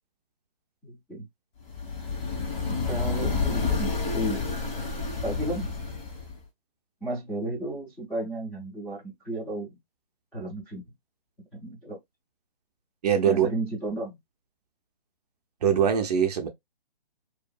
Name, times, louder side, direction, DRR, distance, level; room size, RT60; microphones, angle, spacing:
voice 1, 0.8-1.3 2.9-4.4 5.2-5.7 7.0-9.8 10.3-10.8 11.5-12.0 13.2-14.2, right 1 dB, 5° left, 0.5 m, -33 dB
sound 1, 1.7-6.4, left 4 dB, 50° left, 1.4 m, -29 dB
voice 2, 13.0-13.5 15.6-16.5, right 8 dB, 45° right, 0.5 m, -22 dB
2.7 x 2.5 x 2.3 m
hypercardioid pair, 145°, 29 cm